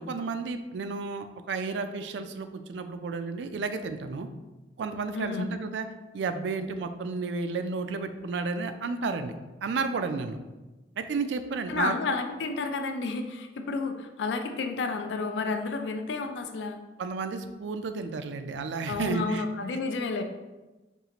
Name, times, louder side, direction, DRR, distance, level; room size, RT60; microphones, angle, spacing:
voice 1, 0.0-4.3 4.8-5.9 6.1-9.3 9.6-10.4 11.0-11.9 17.0-19.5, right 4 dB, 85° right, 8 dB, 0.4 m, -32 dB
voice 2, 5.1-5.5 11.7-16.8 18.9-20.2, left 4 dB, 80° left, 6 dB, 0.4 m, -31 dB
5.3 x 2.4 x 2.9 m, 1.1 s
head